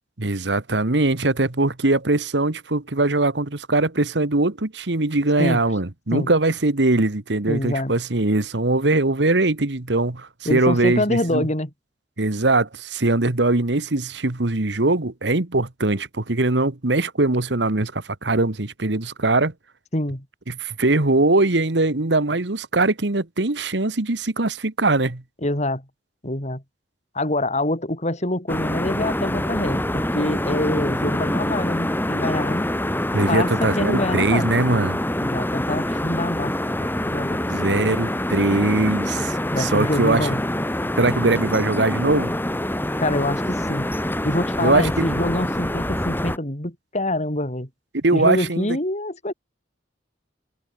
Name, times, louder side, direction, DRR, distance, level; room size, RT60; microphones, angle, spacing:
voice 1, 0.2-11.5 12.2-19.5 20.5-25.2 33.1-35.0 37.5-40.3 41.0-42.3 44.6-45.2 47.9-48.7, right 2 dB, 75° right, 1.6 m, -21 dB
voice 2, 7.5-7.9 10.5-11.7 19.9-20.2 25.4-25.8 26.2-26.6 27.1-32.7 33.3-34.5 35.2-36.5 36.8-37.4 39.5-40.4 43.0-43.9 44.2-47.7 48.1-49.3, left 1 dB, 40° left, 5.7 m, -25 dB
sound 1, 28.5-46.4, left 1 dB, 10° left, 4.4 m, -25 dB
head